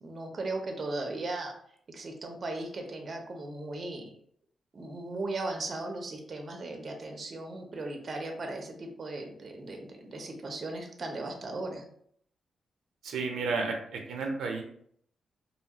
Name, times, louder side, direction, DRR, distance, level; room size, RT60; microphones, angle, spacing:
voice 1, 0.0-1.5 1.9-4.1 4.7-11.8, right 2 dB, 40° right, 2 dB, 0.5 m, -37 dB
voice 2, 13.0-14.6, right 4 dB, 90° right, 2 dB, 0.5 m, -32 dB
2.7 x 2.3 x 2.8 m, 0.65 s
cardioid pair, 115°, 0 cm